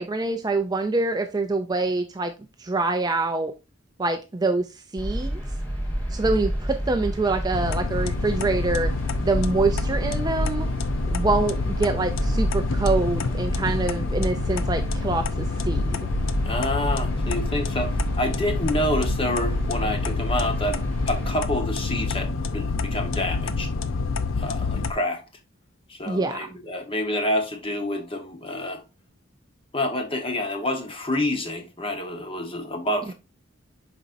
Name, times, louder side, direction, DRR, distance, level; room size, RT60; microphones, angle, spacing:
voice 1, 0.0-2.3 2.6-3.5 4.0-5.4 6.1-8.9 9.2-10.7 11.1-16.1 26.1-26.5 33.1-33.2, right 3 dB, 20° right, 0.4 m, -25 dB
sound 1, 5.0-21.3, equal, 10° left, 2.5 m, -29 dB
sound 2, 7.5-24.9, left 4 dB, 70° left, 0.6 m, -28 dB
voice 2, 16.4-20.8 21.1-23.7 24.4-25.2 25.9-28.8 29.7-33.1, left 1 dB, 25° left, 1.1 m, -28 dB
7.0 x 5.2 x 2.6 m
head